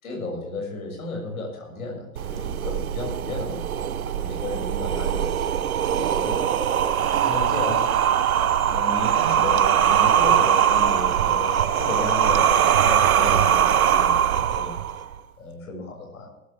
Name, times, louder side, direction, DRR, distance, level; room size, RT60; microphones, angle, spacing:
voice 1, 0.0-5.5 5.9-6.6 7.3-7.9 8.6-14.7 15.4-16.3, left 2 dB, 70° left, 0 dB, 7.0 m, -33 dB
sound 1, 2.2-15.1, right 9 dB, 75° right, 0.9 m, -21 dB
18.5 x 14.5 x 3.6 m, 0.97 s
figure-of-eight pair, 95°, 44 cm